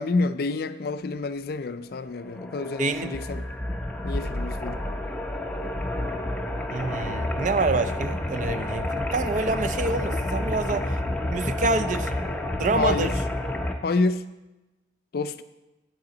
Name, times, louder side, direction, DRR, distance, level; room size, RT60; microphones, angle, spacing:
voice 1, 0.0-3.5 4.0-4.8 12.8-13.1 13.8-14.2 15.1-15.4, left 3 dB, 55° left, 12 dB, 0.4 m, -28 dB
sound 1, 2.2-13.7, left 1 dB, 5° left, 0.6 m, -29 dB
voice 2, 2.8-3.2 6.7-11.0 11.3-12.1 12.6-13.1, right 3 dB, 40° right, 10 dB, 0.4 m, -27 dB
8.6 x 8.6 x 3.9 m, 1.0 s
head